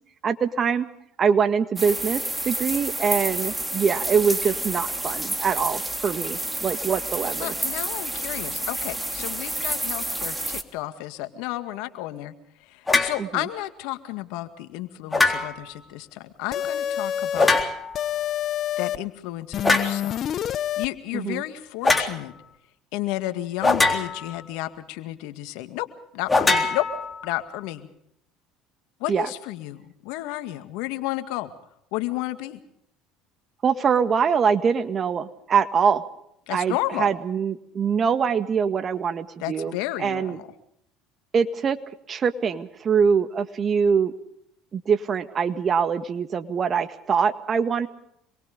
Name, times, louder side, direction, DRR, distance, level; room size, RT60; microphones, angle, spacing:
voice 1, 0.2-0.9 1.2-7.5 13.2-13.5 21.1-21.4 29.1-29.3 33.6-36.0 36.5-40.4 41.3-41.8 42.1-44.1 44.7-47.9, right 6 dB, 40° right, 11 dB, 1.8 m, -23 dB
sound 1, 1.8-10.6, right 1 dB, 10° right, 2.5 m, -29 dB
voice 2, 7.4-12.3 12.7-17.6 18.8-20.2 20.8-22.3 22.9-25.9 26.1-26.9 27.2-27.9 29.0-31.5 31.9-32.6 36.5-37.1 39.4-40.5, left 16 dB, 75° left, 9 dB, 2.1 m, -32 dB
sound 2, 12.9-13.2 15.1-15.7 17.3-18.0 19.6-20.0 21.8-22.1 23.6-24.4 26.3-27.4, left 3 dB, 15° left, 3.7 m, -22 dB
sound 3, 16.5-17.6 17.9-19.0 19.5-20.9, left 10 dB, 50° left, 0.8 m, -27 dB
27.0 x 22.5 x 5.2 m, 0.75 s
supercardioid pair, 80°, 0 cm